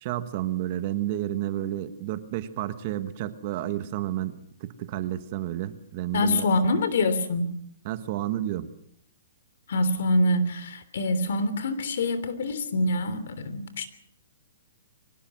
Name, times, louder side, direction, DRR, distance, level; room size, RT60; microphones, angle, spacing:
voice 1, 0.0-6.5 7.8-8.7, right 13 dB, 35° right, 11 dB, 1.4 m, -31 dB
voice 2, 6.1-7.5 9.7-13.9, left 2 dB, 65° left, 12 dB, 3.2 m, -25 dB
23.5 x 18.0 x 6.2 m, 0.68 s
hypercardioid pair, 160°, 0 cm